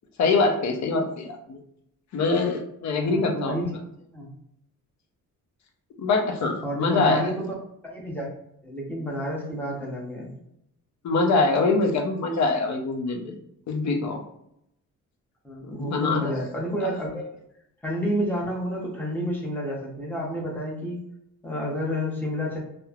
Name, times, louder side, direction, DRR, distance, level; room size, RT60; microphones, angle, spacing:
voice 1, 0.2-1.6 2.1-3.6 6.0-7.2 11.0-13.4 13.7-14.2 15.6-16.3 16.8-16.9, left 3 dB, 55° left, 3 dB, 0.6 m, -24 dB
voice 2, 3.0-3.8 4.1-4.3 6.6-7.5 7.8-8.3 8.6-10.3 15.4-17.2 17.8-21.0 21.4-22.6, equal, 5° left, -3 dB, 0.8 m, -29 dB
2.9 x 2.1 x 2.3 m, 0.77 s
cardioid pair, 120°, 33 cm